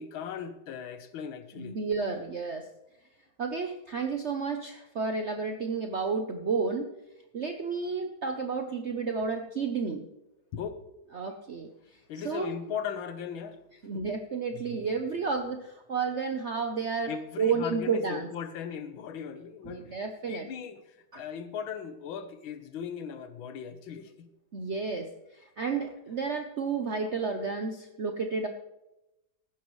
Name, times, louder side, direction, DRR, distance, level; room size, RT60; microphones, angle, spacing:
voice 1, 0.0-1.8 10.5-10.8 12.1-13.6 13.9-14.0 17.1-20.0 20.3-24.3, left 7 dB, 75° left, 10 dB, 1.8 m, -38 dB
voice 2, 1.6-2.7 3.4-6.9 7.3-10.0 11.1-11.7 12.2-12.5 13.8-17.1 17.4-18.3 19.6-20.5 21.1-21.2 24.5-28.5, right 5 dB, 65° right, 5 dB, 0.6 m, -31 dB
15.0 x 11.5 x 3.2 m, 0.93 s
omnidirectional pair, 2.3 m